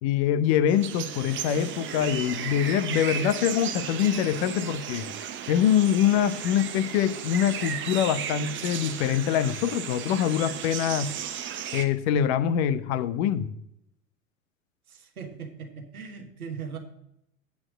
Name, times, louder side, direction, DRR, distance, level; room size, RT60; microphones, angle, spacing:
voice 1, 0.0-5.1 5.5-11.1 11.7-13.5, left 9 dB, 50° left, 13 dB, 0.8 m, -24 dB
sound 1, 0.7-11.9, right 9 dB, 25° right, 0.9 m, -35 dB
voice 2, 14.9-16.8, right 6 dB, 80° right, 4 dB, 1.6 m, -39 dB
8.5 x 4.6 x 6.3 m, 0.79 s
figure-of-eight pair, 85°, 43 cm